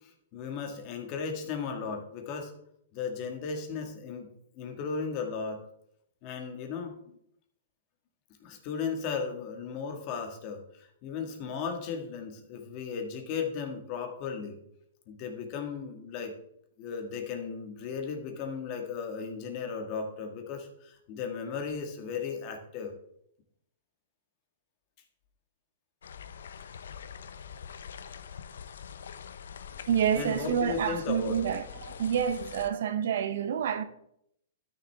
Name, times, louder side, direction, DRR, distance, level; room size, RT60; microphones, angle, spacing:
voice 1, 0.3-2.5 2.9-4.3 4.6-5.6 6.2-7.0 8.4-10.6 11.0-14.6 15.1-16.3 16.8-22.9 30.1-31.5, left 5 dB, 35° left, 1.7 m, -35 dB
sound 1, 26.0-32.7, left 7 dB, 80° left, 0.6 m, -44 dB
voice 2, 29.9-33.8, right 8 dB, 65° right, 0.8 m, -28 dB
12.5 x 6.6 x 3.5 m
hypercardioid pair, 160°, 0 cm